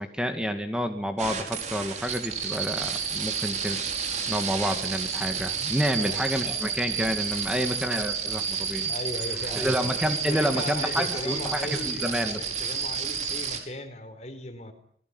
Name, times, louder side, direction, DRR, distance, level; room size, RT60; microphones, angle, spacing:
voice 1, 0.0-3.9 4.3-8.9 9.5-12.5, equal, 5° right, 6 dB, 2.2 m, -29 dB
sound 1, 1.2-13.6, right 6 dB, 40° right, 5.1 m, -31 dB
voice 2, 8.9-9.8 10.3-14.7, left 1 dB, 40° left, 9 dB, 4.3 m, -37 dB
27.5 x 20.0 x 9.6 m, 0.63 s
head